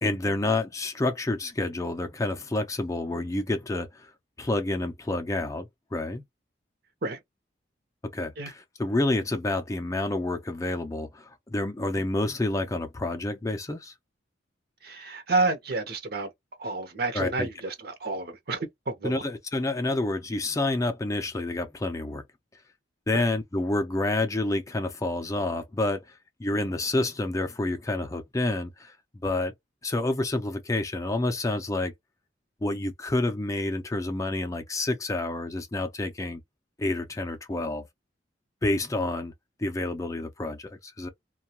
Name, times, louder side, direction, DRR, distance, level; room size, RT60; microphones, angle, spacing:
voice 1, 0.0-4.1 4.4-6.2 8.1-8.5 8.8-13.9 17.1-17.5 19.0-22.2 23.1-29.0 29.2-29.5 29.8-31.9 32.6-36.4 36.8-37.8 38.6-39.3 39.6-41.1, left 2 dB, 15° left, 0.4 m, -28 dB
voice 2, 14.8-16.3 16.6-19.2 23.1-23.3, right 3 dB, 55° right, 0.8 m, -30 dB
2.3 x 2.2 x 2.8 m
head